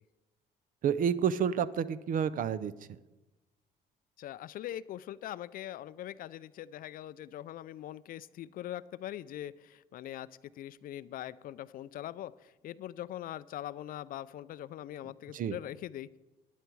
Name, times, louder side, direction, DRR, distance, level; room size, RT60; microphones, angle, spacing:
voice 1, 0.8-2.7 15.3-15.6, right 8 dB, 55° right, 16 dB, 0.6 m, -29 dB
voice 2, 4.2-10.3 10.6-16.2, left 12 dB, 60° left, 17 dB, 0.4 m, -42 dB
11.5 x 10.0 x 4.6 m, 1.1 s
cardioid pair, 110°, 17 cm